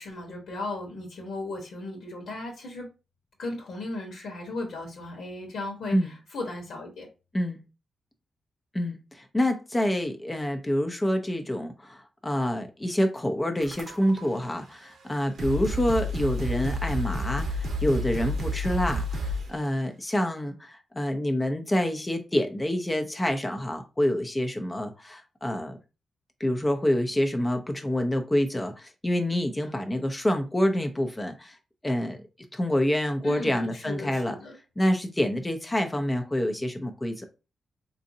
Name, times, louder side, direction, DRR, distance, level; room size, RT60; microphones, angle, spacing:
voice 1, 0.0-2.9 3.4-7.1 33.2-34.6, left 2 dB, 80° left, 1.1 m, -36 dB
voice 2, 8.7-25.8 26.4-31.6 31.8-32.2 32.5-34.4 34.8-37.2, left 1 dB, 15° left, 0.5 m, -27 dB
sound 1, 13.6-14.3 15.0-15.1 15.4-19.6, equal, 80° right, 0.8 m, -30 dB
3.7 x 2.6 x 2.6 m
cardioid pair, 110°, 0 cm